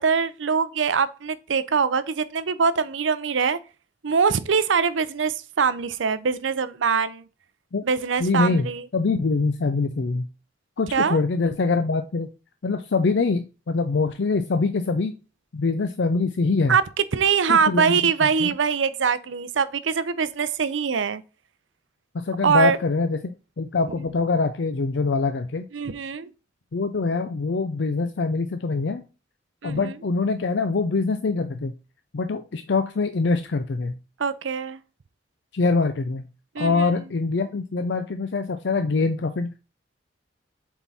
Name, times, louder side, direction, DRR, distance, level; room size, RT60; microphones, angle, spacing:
voice 1, 0.0-3.6 4.0-7.2 7.8-8.8 10.9-11.2 16.7-16.8 17.1-21.2 22.4-22.8 25.7-26.3 29.6-30.0 34.2-34.8 36.5-36.9, right 6 dB, 85° right, 0.6 m, -23 dB
voice 2, 8.2-10.3 10.8-12.3 12.6-15.1 15.5-16.8 17.5-18.5 22.1-25.6 26.7-29.0 29.6-31.7 32.1-34.0 35.5-36.3 36.6-39.5, left 3 dB, 65° left, 0.5 m, -24 dB
7.2 x 3.7 x 4.1 m
head